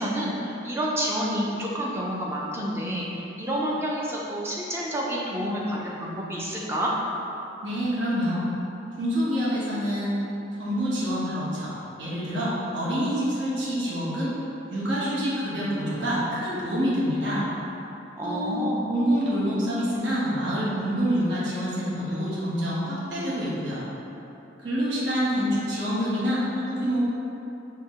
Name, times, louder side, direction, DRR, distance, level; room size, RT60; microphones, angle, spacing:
voice 1, 0.0-6.9 18.2-18.8, equal, 15° right, -4 dB, 0.5 m, -29 dB
voice 2, 7.6-8.4 9.0-10.2 10.6-11.7 12.0-14.3 14.7-17.4 18.2-18.6 18.9-23.8 24.6-27.0, equal, 65° right, -9 dB, 1.0 m, -26 dB
4.6 x 2.8 x 3.6 m, 3.0 s
head